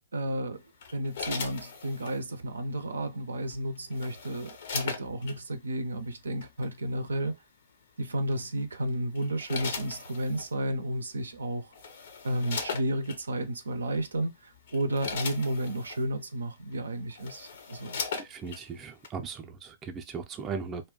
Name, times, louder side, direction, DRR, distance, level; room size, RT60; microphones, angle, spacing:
voice 1, 0.1-0.6 0.9-7.4 8.0-11.7 12.2-18.0, right 1 dB, 80° right, 0.5 m, -32 dB
sound 1, 0.8-2.2 3.5-5.4 6.4-6.7 8.3-8.6 9.1-10.5 11.3-11.4 11.7-13.2 13.9-14.1 14.5-16.0 16.7-16.8 17.1-18.6 19.0-19.1, left 5 dB, 60° left, 0.6 m, -38 dB
voice 2, 18.1-20.9, right 5 dB, 20° right, 0.5 m, -38 dB
2.4 x 2.1 x 3.6 m
hypercardioid pair, 120°, 0 cm